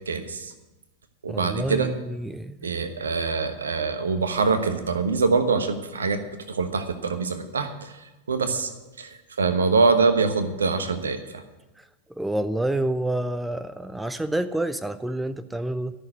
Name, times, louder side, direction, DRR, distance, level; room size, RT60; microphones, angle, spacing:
voice 1, 0.1-0.5 1.2-1.9 2.6-6.2 6.5-7.9 8.3-8.7 9.0-11.4, right 4 dB, 70° right, 9 dB, 1.1 m, -24 dB
voice 2, 1.3-2.7 11.8-11.9 12.2-15.9, right 1 dB, 5° right, 11 dB, 0.5 m, -28 dB
13.0 x 6.4 x 9.1 m, 1.1 s
figure-of-eight pair, 90°, 0 cm